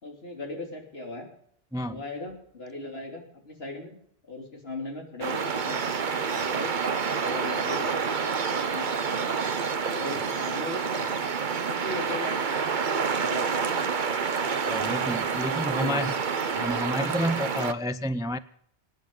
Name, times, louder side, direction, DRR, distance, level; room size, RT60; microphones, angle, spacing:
voice 1, 0.0-1.3 1.9-4.0 4.3-6.7 7.1-8.0 8.3-9.4 9.9-11.3 11.7-13.7 14.4-15.0 15.7-16.1, left 2 dB, 60° left, 2 dB, 3.5 m, -38 dB
voice 2, 1.7-2.0 14.7-16.1 16.6-18.4, equal, 5° right, 14 dB, 0.3 m, -30 dB
sound 1, 5.2-17.7, right 5 dB, 50° right, 1.0 m, -28 dB
24.0 x 9.9 x 5.4 m, 0.67 s
omnidirectional pair, 1.1 m